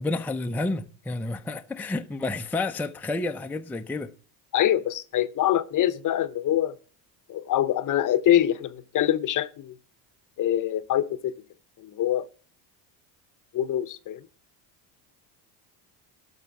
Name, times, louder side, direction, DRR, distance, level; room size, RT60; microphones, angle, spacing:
voice 1, 0.0-4.1, left 2 dB, 5° left, 0.5 m, -30 dB
voice 2, 4.5-6.8 7.3-9.8 10.4-11.3 11.8-12.3 13.5-14.3, left 12 dB, 45° left, 0.7 m, -24 dB
12.5 x 5.7 x 5.9 m
cardioid pair, 125°, 45 cm